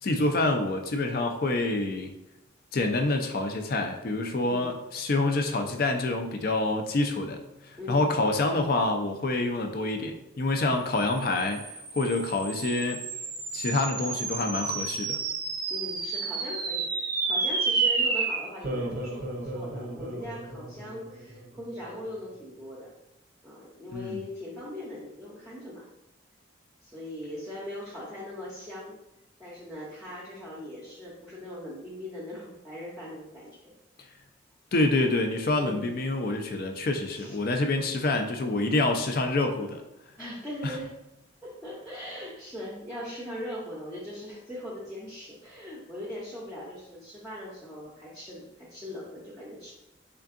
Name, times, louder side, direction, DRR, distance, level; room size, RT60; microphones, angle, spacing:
voice 1, 0.0-2.1 2.7-11.6 11.9-13.0 13.5-15.2 23.9-24.2 34.7-39.8 40.6-40.8, left 2 dB, 50° left, 5 dB, 0.4 m, -27 dB
voice 2, 4.4-4.7 7.8-8.1 15.7-22.9 23.4-25.9 26.8-29.0 29.4-33.7 35.6-35.9 37.1-37.4 40.2-40.9 41.4-49.7, left 1 dB, 5° right, -8 dB, 0.6 m, -40 dB
sound 1, 11.2-21.8, right 4 dB, 45° right, 0.5 m, -31 dB
3.7 x 3.4 x 2.5 m, 0.91 s
head